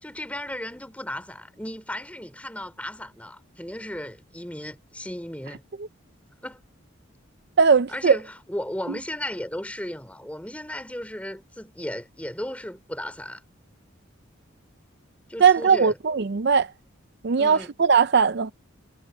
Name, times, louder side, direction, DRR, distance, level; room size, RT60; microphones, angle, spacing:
voice 1, 0.0-5.6 6.4-6.6 7.9-13.4 15.3-15.9 17.4-17.7, left 1 dB, 5° left, 3.0 m, -35 dB
voice 2, 7.6-8.2 15.4-16.7 17.2-18.5, right 6 dB, 50° right, 0.5 m, -19 dB
head